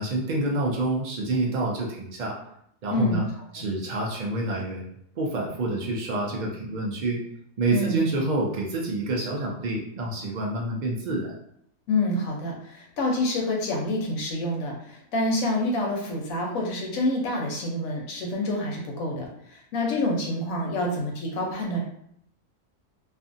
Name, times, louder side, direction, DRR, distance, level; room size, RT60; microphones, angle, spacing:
voice 1, 0.0-2.4 2.8-3.2 3.5-7.2 7.6-11.3, right 2 dB, 90° right, -2 dB, 0.4 m, -28 dB
voice 2, 2.9-3.2 3.6-3.7 7.7-8.0 11.9-21.8, left 1 dB, 90° left, 0 dB, 1.1 m, -27 dB
2.6 x 2.4 x 2.5 m, 0.72 s
omnidirectional pair, 1.4 m